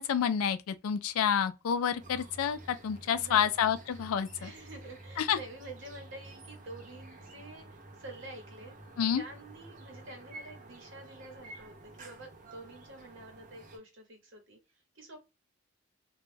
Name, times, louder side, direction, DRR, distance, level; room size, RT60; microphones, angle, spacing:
voice 1, 0.0-4.5 5.2-5.4 9.0-9.2, left 8 dB, 80° left, 0.3 m, -29 dB
sound 1, 2.0-13.8, right 2 dB, 35° right, 0.5 m, -50 dB
voice 2, 3.2-3.5 4.4-8.8 9.2-14.6 14.9-15.2, right 2 dB, 60° right, 0.9 m, -48 dB
2.2 x 2.0 x 3.2 m
head